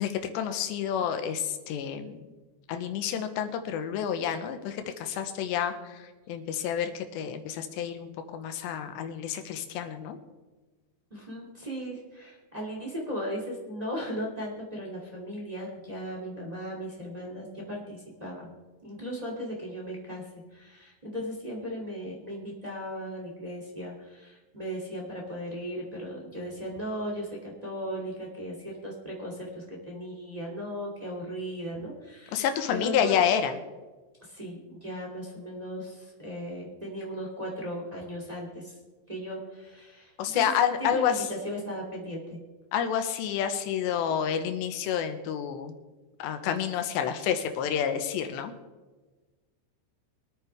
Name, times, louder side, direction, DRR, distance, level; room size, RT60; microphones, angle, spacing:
voice 1, 0.0-2.2 2.7-10.2 32.3-33.5 40.2-41.2 42.7-45.8 46.2-48.5, left 8 dB, 85° left, 8 dB, 3.1 m, -29 dB
voice 2, 11.1-18.5 18.8-32.4 32.7-33.2 34.2-38.8 39.1-40.4 40.8-42.4, equal, 15° right, -2 dB, 1.3 m, -37 dB
24.0 x 9.3 x 3.4 m, 1.3 s
omnidirectional pair, 5.1 m